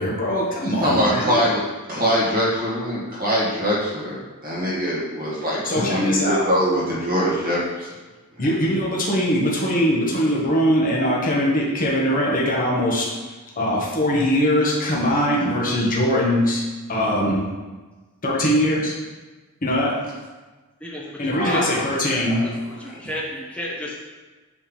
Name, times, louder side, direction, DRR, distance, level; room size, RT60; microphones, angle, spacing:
voice 1, 0.0-1.4 5.6-6.4 8.4-16.6 16.9-17.5 18.2-18.9 19.6-19.9 21.2-22.7, equal, 40° left, -4 dB, 1.2 m, -21 dB
voice 2, 0.6-1.6 1.9-7.9 10.1-10.2 21.3-22.5, equal, 40° right, -6 dB, 1.9 m, -23 dB
voice 3, 20.8-21.2 21.4-21.8 23.0-23.9, left 1 dB, 5° left, -4 dB, 0.8 m, -30 dB
7.2 x 3.4 x 5.5 m, 1.3 s
head